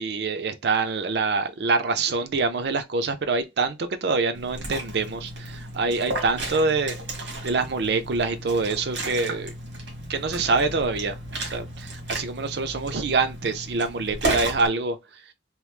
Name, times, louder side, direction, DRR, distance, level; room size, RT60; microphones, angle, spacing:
voice 1, 0.0-7.0 7.4-9.5 10.1-11.2 11.4-15.0, right 4 dB, 65° right, 0.5 m, -25 dB
Liquid, 4.3-14.7, right 2 dB, 80° right, 1.2 m, -33 dB
3.0 x 2.0 x 3.2 m
head